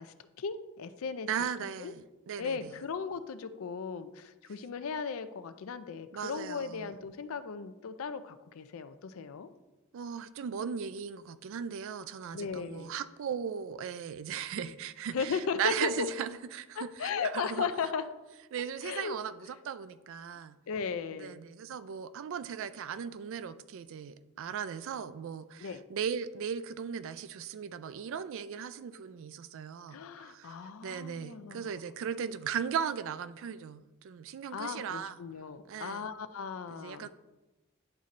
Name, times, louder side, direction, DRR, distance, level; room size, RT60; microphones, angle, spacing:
voice 1, 0.0-1.3 1.8-1.9 2.4-9.5 12.3-12.9 14.6-14.7 15.1-16.1 16.8-18.1 18.8-19.2 20.7-21.4 25.6-25.8 29.9-31.7 34.5-37.1, left 5 dB, 65° left, 0.4 m, -36 dB
voice 2, 1.3-2.7 6.1-6.9 9.9-17.7 18.5-20.6 21.1-30.6 30.8-35.2 35.7-36.1 36.7-37.1, right 7 dB, 60° right, 0.3 m, -37 dB
10.5 x 4.1 x 2.5 m
head